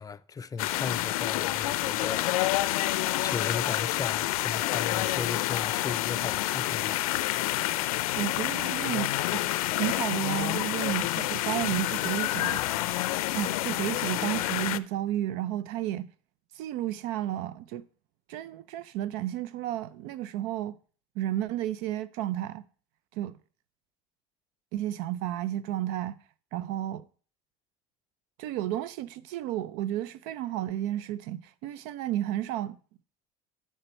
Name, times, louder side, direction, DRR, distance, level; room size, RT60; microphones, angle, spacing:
voice 1, 0.0-2.3 3.2-7.0, left 5 dB, 20° left, 0.4 m, -36 dB
sound 1, 0.6-14.8, left 16 dB, 90° left, 0.4 m, -28 dB
voice 2, 8.2-9.1 9.8-12.6 13.3-16.1 16.5-17.8 18.3-20.8 21.2-22.6 23.1-23.4 24.7-26.2 26.5-27.0 28.4-32.8, right 13 dB, 70° right, 0.6 m, -32 dB
9.0 x 6.8 x 4.5 m
supercardioid pair, 100°, 18 cm